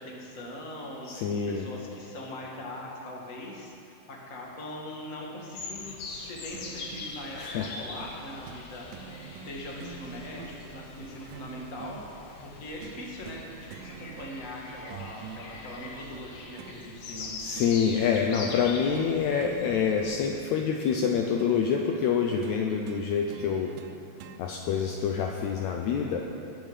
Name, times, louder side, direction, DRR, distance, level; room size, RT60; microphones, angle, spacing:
voice 1, 0.0-1.1 1.4-8.9 9.4-12.0 12.4-17.3, left 1 dB, 35° left, -2 dB, 1.4 m, -41 dB
voice 2, 1.1-1.7 7.3-7.7 17.4-23.7 24.4-26.2, left 7 dB, 85° left, 2 dB, 1.6 m, -27 dB
sound 1, 5.5-20.3, left 3 dB, 60° left, 1.9 m, -43 dB
sound 2, 6.5-7.2 8.0-8.2 8.5-8.6 8.9-12.0 12.8-13.4 13.7-14.5 14.9-16.8 17.6-17.8 18.0-18.2 18.5-19.1 19.4-21.6 22.4-24.4 25.4-25.5, right 8 dB, 90° right, 2.4 m, -46 dB
19.5 x 7.4 x 5.0 m, 2.7 s
omnidirectional pair, 4.1 m